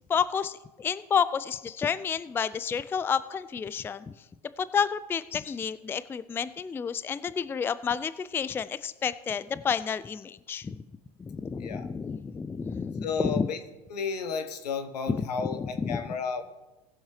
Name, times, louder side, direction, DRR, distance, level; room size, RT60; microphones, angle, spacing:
voice 1, 0.1-4.1 4.6-10.8 11.2-13.5 15.1-15.3 15.6-16.0, left 6 dB, 10° left, 16 dB, 0.3 m, -30 dB
voice 2, 13.0-13.6 13.9-16.4, left 5 dB, 80° left, 8 dB, 1.2 m, -32 dB
19.0 x 7.2 x 3.2 m, 1.1 s
hypercardioid pair, 90°, 21 cm